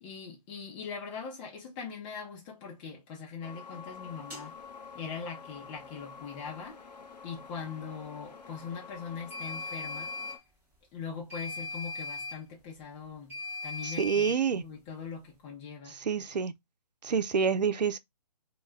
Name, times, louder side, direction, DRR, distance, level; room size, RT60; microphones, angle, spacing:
voice 1, 0.0-4.5 4.9-6.8 7.2-10.1 10.9-14.3 14.5-16.0, left 6 dB, 15° left, 0.5 m, -41 dB
sound 1, 3.4-10.4, left 5 dB, 85° left, 0.6 m, -48 dB
sound 2, 4.3-4.4 9.3-10.4 11.3-12.4 13.3-14.4, left 3 dB, 10° right, 1.0 m, -38 dB
voice 2, 13.8-14.6 15.9-16.5 17.0-18.0, right 6 dB, 85° right, 0.4 m, -28 dB
2.1 x 2.1 x 3.1 m
figure-of-eight pair, 145°, 21 cm